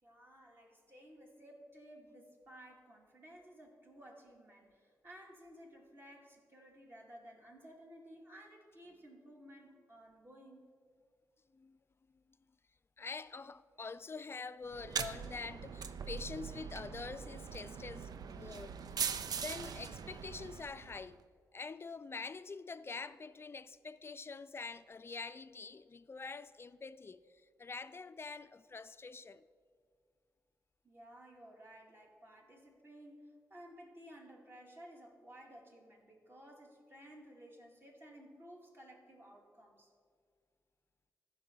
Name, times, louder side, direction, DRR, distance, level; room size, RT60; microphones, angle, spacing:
voice 1, 0.0-10.7 30.8-39.9, equal, 35° right, 2.4 m, -56 dB
voice 2, 13.0-18.8 19.3-21.2 21.5-27.2 27.6-29.4, left 4 dB, 35° left, 0.4 m, -46 dB
sound 1, 14.7-21.1, right 7 dB, 65° right, 0.5 m, -42 dB
14.0 x 5.5 x 3.9 m
supercardioid pair, 50°, 7 cm